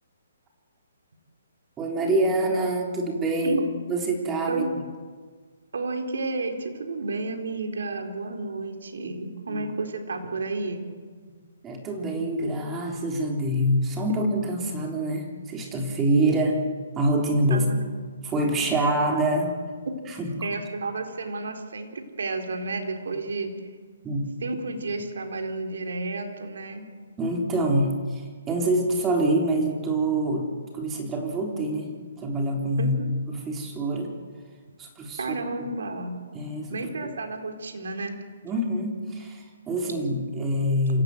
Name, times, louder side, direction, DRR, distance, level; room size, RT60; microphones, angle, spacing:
voice 1, 1.8-3.6 3.9-4.7 9.5-9.6 11.6-16.6 17.0-17.7 18.2-19.6 20.2-20.3 24.0-24.3 27.2-33.0 33.3-34.1 34.8-35.4 36.3-37.1 38.4-41.0, right 1 dB, 15° right, 1 dB, 3.8 m, -26 dB
voice 2, 5.7-10.8 17.5-18.0 20.4-23.5 24.4-26.9 32.8-33.1 35.2-36.2 36.7-38.2, right 3 dB, 75° right, 4 dB, 4.1 m, -31 dB
27.5 x 16.0 x 8.0 m, 1.5 s
hypercardioid pair, 150°, 0 cm